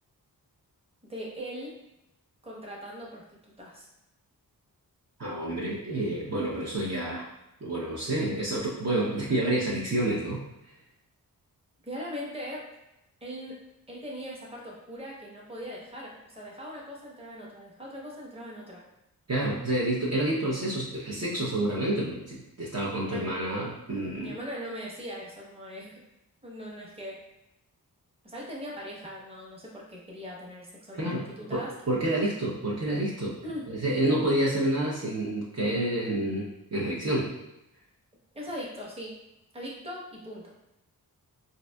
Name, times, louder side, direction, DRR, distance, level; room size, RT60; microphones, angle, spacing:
voice 1, 1.0-1.7 2.4-3.9 11.8-12.6 13.2-18.8 23.1-23.3 24.2-26.0 26.4-27.2 28.2-31.7 33.4-33.7 34.0-34.2 38.3-39.2 39.5-40.4, equal, 15° right, -4 dB, 1.0 m, -40 dB
voice 2, 5.2-7.3 7.6-10.4 19.3-24.4 30.9-31.2 31.5-33.4 33.7-37.3, right 1 dB, 45° right, -6 dB, 0.8 m, -29 dB
3.9 x 2.6 x 2.3 m, 0.89 s
cardioid pair, 60°, 37 cm